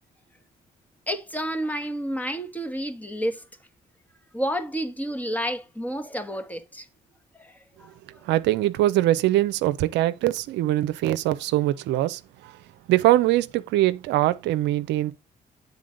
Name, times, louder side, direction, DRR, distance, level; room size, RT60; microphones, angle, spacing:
voice 1, 1.1-3.4 4.3-6.8 7.3-7.5 7.8-7.9, equal, 10° left, 1.5 m, -30 dB
voice 2, 8.3-12.2 12.9-15.1, right 15 dB, 85° right, 0.5 m, -22 dB
8.4 x 4.0 x 5.1 m
supercardioid pair, 60°, 18 cm